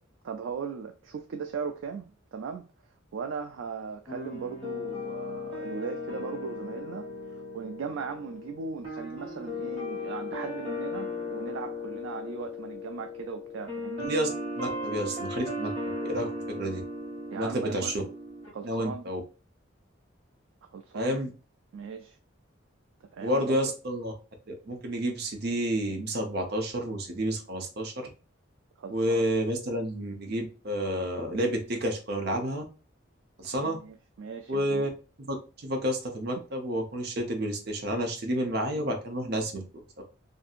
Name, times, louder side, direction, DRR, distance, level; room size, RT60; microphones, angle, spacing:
voice 1, 0.2-2.7 3.1-14.1 17.3-17.9 18.5-19.1 20.6-21.2 21.7-22.2 23.1-23.6 28.8-29.2 33.6-34.9, right 5 dB, 85° right, 0.3 m, -38 dB
sound 1, 4.1-18.5, left 2 dB, 30° right, 1.2 m, -36 dB
voice 2, 14.0-14.3 14.6-15.7 16.1-16.8 17.4-18.0 18.6-19.2 20.9-21.3 23.2-24.1 24.5-28.1 28.9-32.6 33.4-33.8 34.5-34.9 35.2-39.6 40.0-40.1, right 1 dB, 55° right, 0.7 m, -30 dB
2.6 x 2.6 x 2.4 m
head